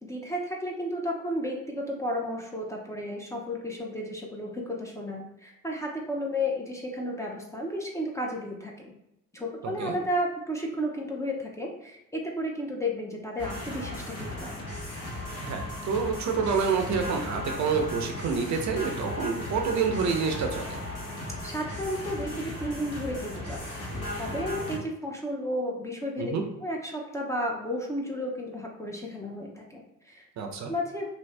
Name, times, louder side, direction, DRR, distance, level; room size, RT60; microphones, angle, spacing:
voice 1, 0.0-8.9 9.3-14.6 21.4-26.3 26.6-30.3 30.7-31.1, equal, 10° left, -1 dB, 0.6 m, -33 dB
voice 2, 9.6-9.9 15.4-20.8 26.2-26.4 30.4-30.7, right 5 dB, 65° right, 4 dB, 0.6 m, -28 dB
sound 1, 13.4-24.8, left 1 dB, 55° left, 1.1 m, -36 dB
2.7 x 2.6 x 3.2 m, 0.86 s
cardioid pair, 90°, 30 cm